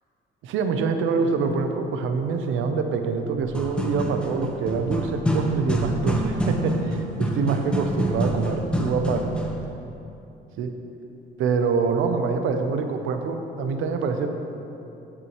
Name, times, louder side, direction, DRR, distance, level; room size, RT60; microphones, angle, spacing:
voice 1, 0.4-6.7 7.2-9.4 10.6-10.7 11.4-14.3, right 5 dB, 90° right, 6 dB, 0.7 m, -25 dB
sound 1, 3.4-9.6, right 1 dB, 5° left, 1.1 m, -27 dB
14.5 x 6.1 x 3.1 m, 2.8 s
cardioid pair, 90°, 20 cm